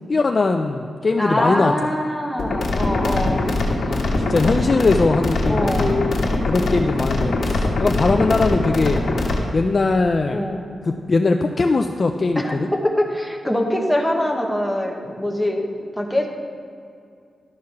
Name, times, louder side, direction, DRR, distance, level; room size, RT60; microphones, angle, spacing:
voice 1, 0.1-1.7 3.2-9.0 9.5-10.5 10.8-12.7, left 3 dB, 35° left, 4 dB, 0.3 m, -21 dB
voice 2, 1.2-3.5 5.4-6.1 6.6-7.0 10.3-10.7 12.4-15.7 16.0-16.3, left 1 dB, 5° left, 1 dB, 0.9 m, -24 dB
sound 1, 2.4-9.4, left 2 dB, 60° left, 1.3 m, -22 dB
12.0 x 4.7 x 5.7 m, 2.4 s
wide cardioid pair, 175°, 0 cm